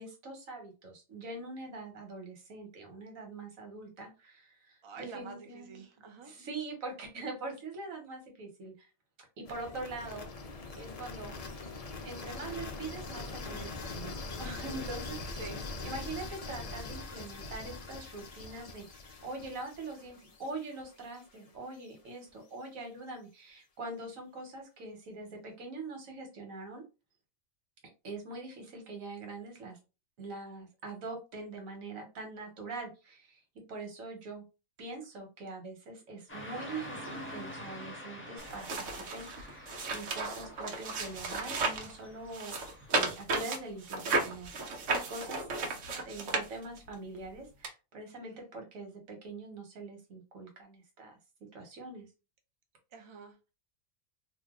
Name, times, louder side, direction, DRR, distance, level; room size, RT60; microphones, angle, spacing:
voice 1, 0.0-5.8 6.2-8.9 9.4-10.3 10.7-11.4 12.0-15.5 15.8-26.8 28.0-29.8 30.2-33.4 33.7-34.4 34.8-38.7 39.1-42.6 42.9-45.5 46.0-51.2 51.5-52.1, right 3 dB, 90° right, 3 dB, 1.4 m, -43 dB
voice 2, 4.8-6.3 15.3-15.6 48.2-48.3 52.9-53.5, right 4 dB, 40° right, 4 dB, 0.4 m, -47 dB
sound 1, 9.4-21.4, left 3 dB, 65° left, 0.3 m, -42 dB
Car passing by / Traffic noise roadway noise, 36.3-43.1, equal, 10° left, 0.7 m, -47 dB
sound 2, 38.4-41.9 42.3-46.9 47.6-47.7, right 3 dB, 70° right, 1.1 m, -34 dB
2.7 x 2.2 x 3.5 m, 0.30 s
omnidirectional pair, 1.4 m